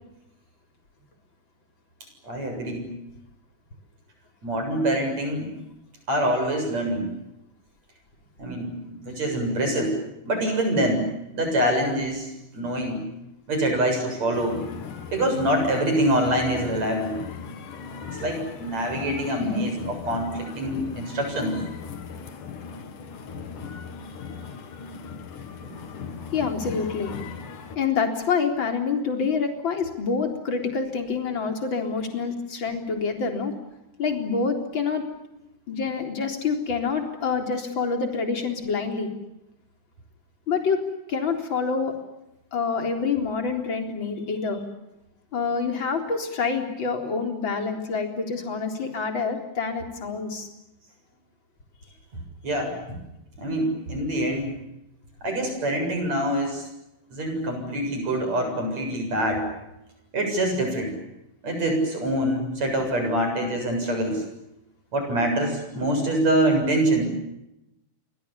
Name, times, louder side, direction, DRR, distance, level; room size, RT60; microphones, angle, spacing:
voice 1, 2.2-2.9 4.4-5.5 6.1-7.1 8.4-10.0 10.2-13.1 13.5-14.6 15.1-17.2 18.1-21.6 25.6-25.7 52.4-53.0 53.4-54.6 55.2-56.6 57.1-59.5 60.1-61.0 61.4-64.2 64.9-67.1, right 1 dB, 60° right, 5 dB, 8.5 m, -25 dB
sound 1, 14.3-27.8, left 6 dB, 85° left, 3.7 m, -38 dB
voice 2, 19.4-19.7 26.3-27.1 27.8-33.5 34.0-35.0 35.7-39.1 40.5-40.8 41.1-41.9 42.5-44.6 45.3-50.5, left 5 dB, 35° left, 4 dB, 4.4 m, -27 dB
29.5 x 24.5 x 7.1 m, 0.89 s
omnidirectional pair, 3.6 m